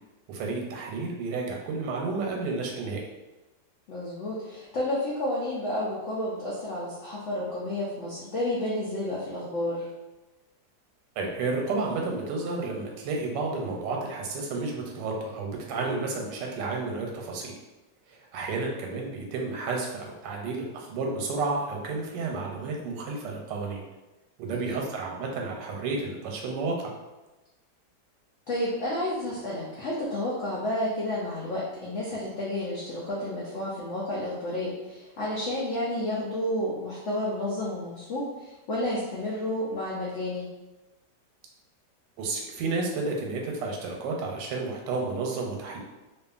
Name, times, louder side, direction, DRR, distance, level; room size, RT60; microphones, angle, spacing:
voice 1, 0.3-3.0 11.2-17.5 18.1-23.8 24.4-26.9 42.2-45.8, right 3 dB, 90° right, 0 dB, 1.2 m, -31 dB
voice 2, 3.9-9.9 24.5-24.6 28.5-40.4, left 1 dB, 70° left, -6 dB, 0.6 m, -31 dB
2.6 x 2.4 x 2.4 m, 1.1 s
omnidirectional pair, 1.9 m